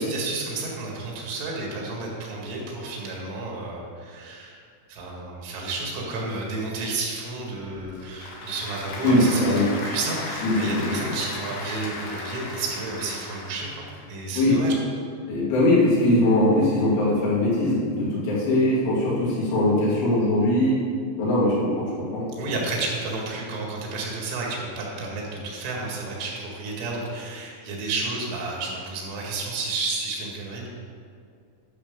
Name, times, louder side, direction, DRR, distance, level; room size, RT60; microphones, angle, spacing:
voice 1, 0.0-4.6 4.9-14.7 22.4-30.7, right 3 dB, 90° right, -2 dB, 4.4 m, -31 dB
Applause / Crowd, 7.6-14.0, left 2 dB, 65° left, 3.2 m, -36 dB
voice 2, 9.0-9.7 10.4-10.7 11.0-11.1 14.4-14.5 15.3-20.8 21.2-22.5, left 1 dB, 85° left, -8 dB, 5.4 m, -21 dB
11.5 x 6.8 x 5.2 m, 2.3 s
omnidirectional pair, 5.4 m